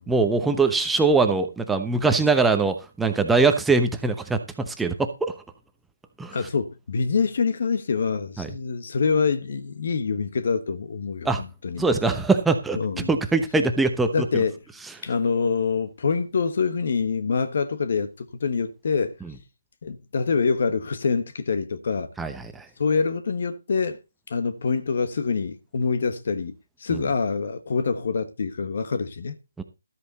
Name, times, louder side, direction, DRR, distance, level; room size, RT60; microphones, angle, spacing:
voice 1, 0.1-5.3 6.2-6.4 8.4-8.5 11.2-11.4 11.8-14.4 22.2-22.6 26.9-27.0 29.6-29.7, right 3 dB, 5° right, 1.0 m, -22 dB
voice 2, 6.3-11.9 12.7-13.1 14.1-14.6 15.0-19.1 19.8-22.1 22.8-24.0 24.3-26.5 26.8-29.3, left 5 dB, 50° left, 1.3 m, -25 dB
13.0 x 8.2 x 4.2 m
figure-of-eight pair, 155°, 0 cm